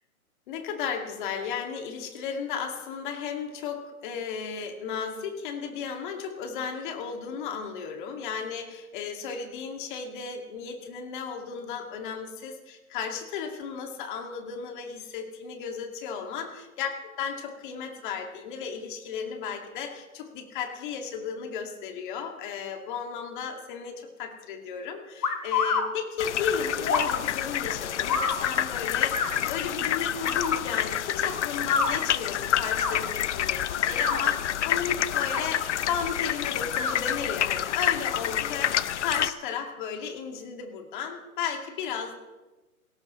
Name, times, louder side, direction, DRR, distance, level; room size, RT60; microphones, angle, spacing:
voice 1, 0.5-42.1, left 6 dB, 35° left, 4 dB, 2.2 m, -34 dB
sound 1, 25.2-25.8 26.8-27.1 28.1-28.4 29.1-29.3 30.2-30.5 31.6-31.9 32.6-32.9 33.8-34.2 35.1-35.4 36.7-36.9, left 5 dB, 85° left, 2.5 m, -27 dB
sound 2, 26.2-39.3, left 11 dB, 55° left, 0.6 m, -28 dB
18.5 x 17.5 x 3.2 m, 1.1 s
hypercardioid pair, 145°, 43 cm